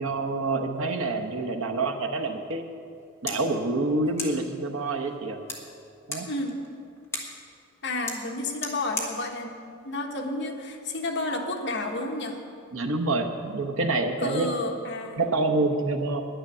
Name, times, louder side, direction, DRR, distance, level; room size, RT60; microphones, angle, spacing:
voice 1, 0.0-2.6 3.2-5.4 6.1-6.3 12.7-14.5 15.2-16.2, right 2 dB, 70° right, 4 dB, 1.1 m, -27 dB
sound 1, 2.8-10.9, left 2 dB, 10° left, 1.4 m, -40 dB
voice 2, 6.3-6.6 7.8-9.6 9.8-12.4 14.2-15.2, left 2 dB, 55° left, 2 dB, 1.4 m, -31 dB
10.5 x 10.0 x 6.9 m, 2.4 s
head